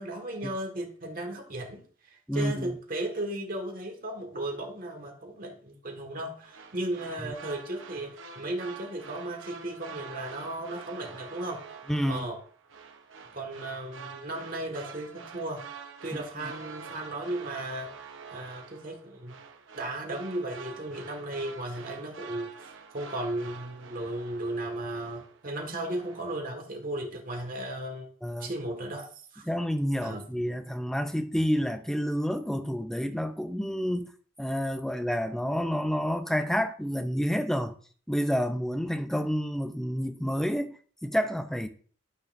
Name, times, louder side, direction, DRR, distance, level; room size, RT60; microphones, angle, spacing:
voice 1, 0.0-1.8 2.3-11.6 12.1-12.4 13.3-15.6 16.0-17.9 18.3-19.3 19.8-28.1 28.4-29.1 29.3-29.4 30.0-30.2, right 1 dB, 45° right, 1.7 m, -35 dB
voice 2, 2.3-2.7 11.9-12.2 28.2-28.5 29.5-34.1 34.4-37.7 38.1-41.7, equal, ahead, 0.5 m, -29 dB
sound 1, 6.4-25.5 25.8-26.4, right 5 dB, 70° right, 1.0 m, -46 dB
12.0 x 6.7 x 2.6 m
head